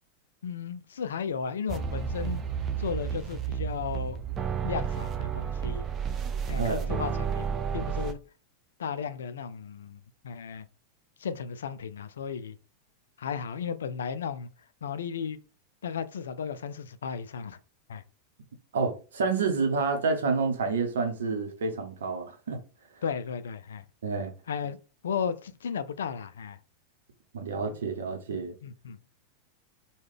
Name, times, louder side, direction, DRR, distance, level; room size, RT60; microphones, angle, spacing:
voice 1, 0.4-2.4 2.8-4.2 4.6-5.9 6.5-7.5 7.7-8.2 8.8-10.7 11.2-12.6 13.2-14.5 14.8-15.4 15.8-17.6 17.9-18.0 23.0-23.8 24.5-24.8 25.0-26.6 28.6-29.0, left 6 dB, 65° left, 0.3 m, -34 dB
sound 1, 1.7-8.1, right 7 dB, 25° right, 0.4 m, -31 dB
voice 2, 6.6-6.9 18.7-22.6 24.0-24.3 27.3-28.5, right 4 dB, 65° right, 0.7 m, -29 dB
3.1 x 2.3 x 3.5 m
figure-of-eight pair, 90°, 0 cm